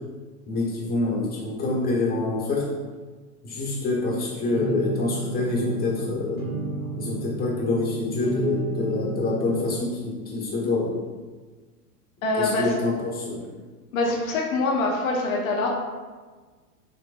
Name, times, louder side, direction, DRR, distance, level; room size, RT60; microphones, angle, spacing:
voice 1, 0.5-2.7 3.4-6.4 7.0-11.0 12.4-13.4, left 2 dB, 20° left, -4 dB, 1.2 m, -26 dB
sound 1, 4.5-9.5, right 3 dB, 55° right, 1.3 m, -32 dB
voice 2, 12.2-12.8 13.9-15.7, left 2 dB, 55° left, -1 dB, 1.1 m, -24 dB
6.7 x 2.5 x 2.4 m, 1.4 s
figure-of-eight pair, 95°, 48 cm